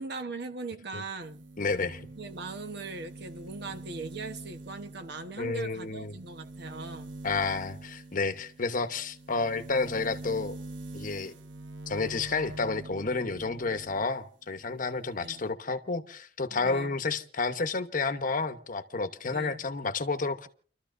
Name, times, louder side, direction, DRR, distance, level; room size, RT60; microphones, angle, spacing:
voice 1, 0.0-1.4 2.2-7.1 15.2-15.4 16.5-17.0 19.3-19.6, right 3 dB, 60° right, 1.2 m, -40 dB
sound 1, 1.2-14.2 14.5-15.5, right 2 dB, 90° right, 0.9 m, -45 dB
voice 2, 1.6-2.1 5.4-6.1 7.2-10.6 10.9-11.3 11.9-20.5, left 3 dB, 45° left, 1.0 m, -30 dB
29.5 x 13.0 x 2.6 m
head